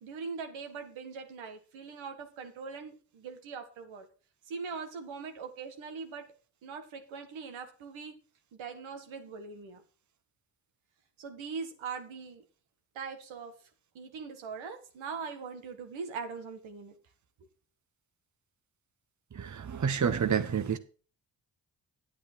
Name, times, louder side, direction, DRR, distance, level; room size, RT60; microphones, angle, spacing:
voice 1, 0.0-4.1 4.5-6.3 6.6-8.1 8.5-9.8 11.2-12.4 12.9-13.5 13.9-16.9, right 5 dB, 85° right, 1.8 m, -41 dB
voice 2, 19.3-20.8, right 7 dB, 40° right, 1.0 m, -29 dB
9.1 x 8.6 x 4.6 m
supercardioid pair, 45°, 46 cm